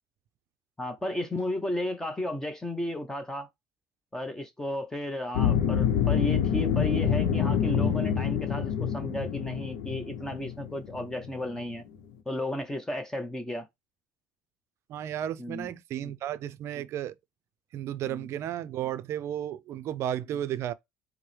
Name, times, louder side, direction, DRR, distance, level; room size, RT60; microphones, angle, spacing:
voice 1, 0.8-3.5 4.1-11.8 12.3-13.7 15.4-15.7 16.0-16.1 18.0-18.3, left 1 dB, 10° left, 0.7 m, -34 dB
sound 1, 5.3-11.6, left 8 dB, 80° left, 0.7 m, -27 dB
voice 2, 14.9-17.1 17.7-20.7, right 11 dB, 55° right, 0.5 m, -33 dB
4.6 x 2.1 x 3.2 m
supercardioid pair, 100°, 6 cm